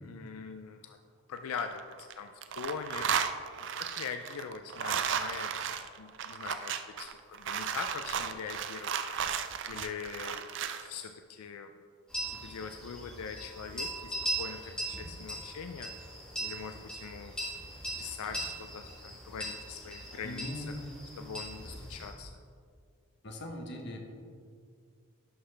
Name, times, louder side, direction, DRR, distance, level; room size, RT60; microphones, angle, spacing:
voice 1, 0.1-1.0 1.3-3.3 3.9-9.4 9.7-11.7 12.3-17.6 18.0-20.7 21.2-22.3, left 6 dB, 85° left, 6 dB, 0.4 m, -42 dB
sound 1, 1.4-2.1 2.4-10.9, right 7 dB, 55° right, 0.4 m, -34 dB
sound 2, 12.1-22.1, right 1 dB, 5° left, 1.5 m, -40 dB
voice 2, 20.2-20.9 23.2-24.0, left 1 dB, 50° left, 3 dB, 1.0 m, -40 dB
11.0 x 5.7 x 3.3 m, 2.2 s
head